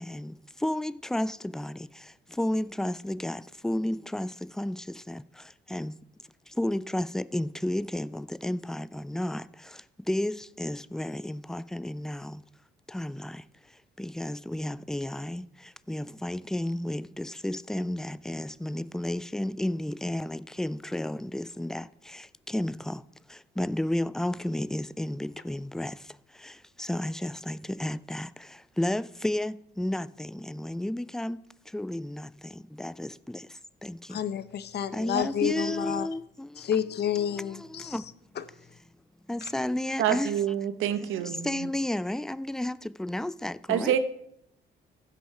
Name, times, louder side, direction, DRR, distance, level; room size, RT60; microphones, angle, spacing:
voice 1, 0.0-6.0 6.5-12.4 12.9-23.0 23.3-34.2 34.9-36.7 37.2-38.1 39.3-40.4 41.0-44.0, left 1 dB, 5° left, 0.3 m, -33 dB
voice 2, 34.1-36.1 36.6-38.0, left 9 dB, 55° left, 0.8 m, -30 dB
voice 3, 40.0-41.7 43.7-44.0, right 10 dB, 90° right, 0.9 m, -27 dB
15.0 x 6.3 x 5.6 m
cardioid pair, 90°, 20 cm